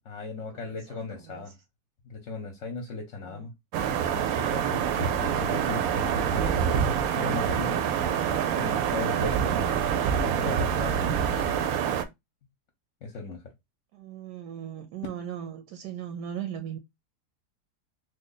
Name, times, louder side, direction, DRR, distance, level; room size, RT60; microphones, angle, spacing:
voice 1, 0.0-1.5 2.0-3.5 3.8-7.8 8.3-9.4 10.2-11.7 13.0-13.4, left 3 dB, 60° left, 0.9 m, -37 dB
sound 1, 3.7-12.0, right 8 dB, 70° right, 0.9 m, -26 dB
voice 2, 13.9-16.8, right 9 dB, 85° right, 1.2 m, -37 dB
3.1 x 2.2 x 3.7 m
omnidirectional pair, 1.7 m